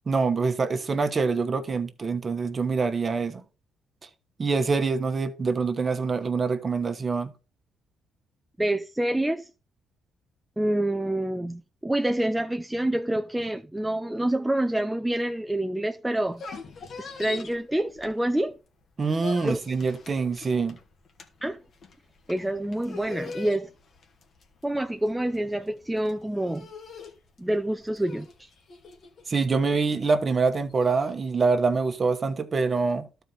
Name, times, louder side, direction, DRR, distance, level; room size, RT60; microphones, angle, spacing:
voice 1, 0.1-3.4 4.4-7.3 19.0-20.8 29.3-33.1, right 4 dB, 35° right, 1.2 m, -25 dB
voice 2, 8.6-9.4 10.6-16.4 17.0-18.5 19.4-19.6 21.4-21.6 22.3-23.7 24.6-26.7 27.4-28.5, right 1 dB, 10° right, 0.5 m, -27 dB
sound 1, 16.2-18.5 18.8-31.1, left 4 dB, 55° left, 1.5 m, -42 dB
12.5 x 4.6 x 3.9 m
cardioid pair, 90°, 0 cm